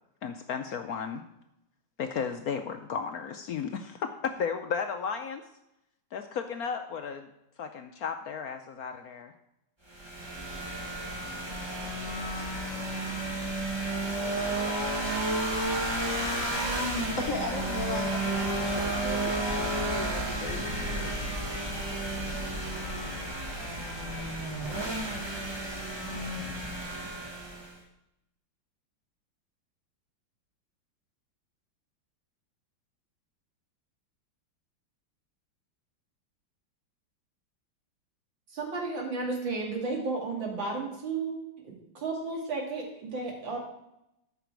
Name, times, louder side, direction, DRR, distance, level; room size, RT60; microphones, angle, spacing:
voice 1, 0.2-1.2 2.0-5.4 6.1-7.3 7.6-9.3 20.9-21.2, left 6 dB, 70° left, 7 dB, 0.9 m, -34 dB
sound 1, 9.9-27.8, right 1 dB, 15° right, 1.4 m, -32 dB
voice 2, 16.8-21.3, left 2 dB, 45° left, 0 dB, 1.4 m, -37 dB
voice 3, 38.5-43.6, right 3 dB, 75° right, 0 dB, 2.9 m, -33 dB
13.0 x 6.0 x 4.6 m, 0.84 s
omnidirectional pair, 2.1 m